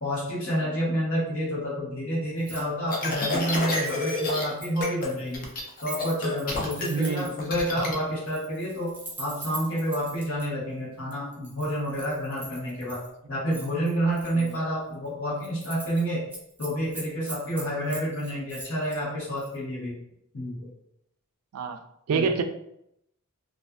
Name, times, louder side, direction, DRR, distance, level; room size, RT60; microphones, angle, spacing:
voice 1, 0.0-5.4 5.8-8.9 9.2-13.0 13.3-16.2 16.6-20.0 20.3-20.7 22.1-22.3, equal, 70° left, -8 dB, 1.0 m, -29 dB
Keys jangling, 2.4-2.6 2.9-7.4 8.1-10.5 11.1-13.1 13.5-14.6 14.9-15.1 15.4-16.0 16.3-19.0 19.4-19.6, right 2 dB, 10° right, 0.5 m, -43 dB
sound 1, 2.9-4.4 4.8-5.1 5.3-7.9, left 2 dB, 40° left, 0.4 m, -29 dB
voice 2, 6.9-7.3 14.3-14.5 21.5-21.8 22.1-22.4, right 5 dB, 80° right, 8 dB, 0.3 m, -27 dB
2.4 x 2.4 x 2.2 m, 0.77 s
head